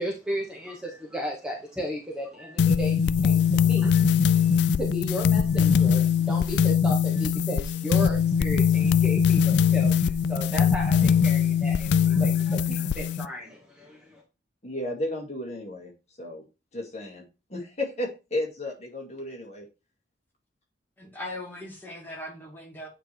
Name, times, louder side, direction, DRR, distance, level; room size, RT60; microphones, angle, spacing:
voice 1, 0.0-14.2, equal, 5° right, 1.2 m, -35 dB
sound 1, 2.6-13.3, left 7 dB, 65° left, 0.3 m, -22 dB
voice 2, 14.6-15.9 16.2-16.4 16.7-17.2 17.5-19.7, left 1 dB, 35° left, 2.1 m, -33 dB
voice 3, 21.0-22.9, left 1 dB, 10° left, 2.2 m, -39 dB
9.1 x 3.3 x 4.5 m
head